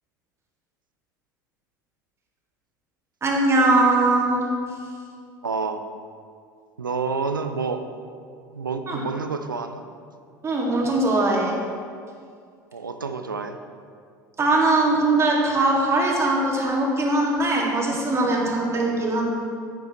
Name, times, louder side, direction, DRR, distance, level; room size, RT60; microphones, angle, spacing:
voice 1, 3.2-4.4 8.9-9.0 10.4-11.6 14.4-19.2, right 2 dB, 25° right, -2 dB, 2.0 m, -21 dB
voice 2, 5.4-5.9 6.8-7.8 8.5-9.8 12.7-13.6 17.9-18.0 18.6-18.9, right 4 dB, 85° right, 8 dB, 0.5 m, -29 dB
9.7 x 8.9 x 3.0 m, 2.2 s
figure-of-eight pair, 70°, 11 cm